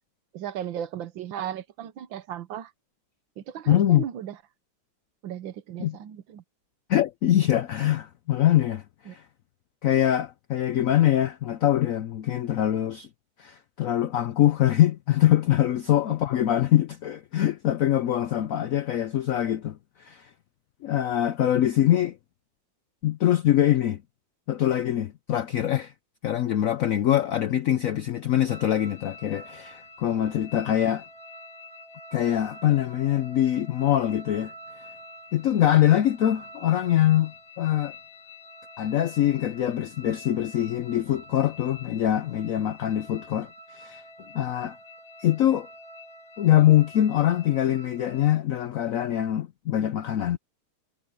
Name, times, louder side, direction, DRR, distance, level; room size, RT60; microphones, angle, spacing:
voice 1, 0.3-2.7 3.4-4.4 5.2-6.4 9.1-9.2 30.7-30.8, right 10 dB, 80° right, 1.7 m, -36 dB
voice 2, 3.7-4.0 5.8-6.0 6.9-9.2 9.8-13.1 13.4-20.3 20.8-22.2 23.0-24.0 24.5-25.9 26.2-31.0 32.1-34.5 35.3-37.9 38.8-44.0 44.3-44.8 45.2-45.7 46.4-50.4, left 12 dB, 85° left, 0.7 m, -23 dB
sound 1, 28.5-48.4, left 1 dB, 55° left, 4.0 m, -47 dB
omnidirectional pair, 2.1 m